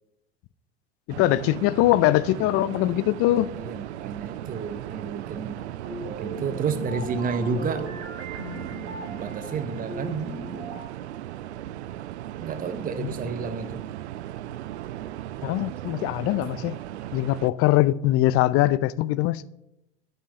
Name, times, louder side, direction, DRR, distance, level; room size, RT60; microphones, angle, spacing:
sound 1, 1.1-17.5, right 13 dB, 80° right, 0.5 m, -37 dB
voice 1, 1.2-3.5 13.0-13.1 15.4-16.8 17.1-19.4, left 16 dB, 45° left, 0.5 m, -22 dB
voice 2, 3.5-5.6 6.1-7.9 9.1-10.4 12.4-13.8, right 5 dB, 25° right, 0.8 m, -31 dB
sound 2, 5.8-10.8, right 1 dB, 45° right, 2.2 m, -38 dB
8.7 x 5.9 x 6.5 m
hypercardioid pair, 80°, 33 cm